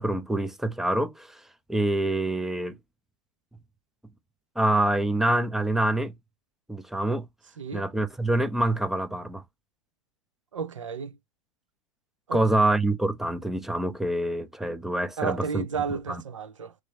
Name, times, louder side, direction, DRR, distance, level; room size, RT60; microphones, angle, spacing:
voice 1, 0.0-1.4 1.7-2.8 4.6-6.1 6.7-7.3 7.7-9.4 12.3-15.7 16.1-16.2, right 1 dB, ahead, 0.4 m, -26 dB
voice 2, 7.6-7.9 10.5-11.2 12.3-12.4 15.2-16.7, right 6 dB, 70° right, 0.7 m, -32 dB
6.0 x 2.1 x 2.8 m
figure-of-eight pair, 100°, 17 cm